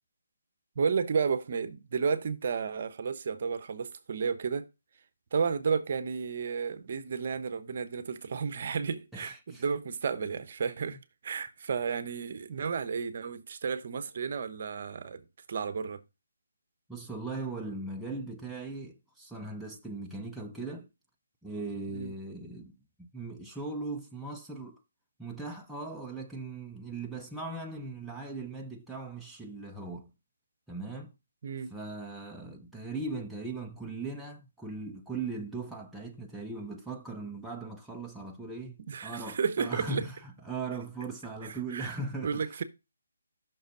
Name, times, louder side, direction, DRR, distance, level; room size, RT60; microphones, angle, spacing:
voice 1, 0.8-4.7 5.3-11.0 11.2-16.0 21.9-22.1 31.4-31.7 38.9-40.0 41.7-42.0 42.2-42.6, right 6 dB, 50° right, 0.9 m, -32 dB
voice 2, 9.1-9.6 10.9-11.0 16.9-20.9 21.4-24.8 25.2-30.1 30.7-31.1 31.7-42.6, right 3 dB, ahead, 0.5 m, -39 dB
6.1 x 3.9 x 5.3 m
hypercardioid pair, 160°, 0 cm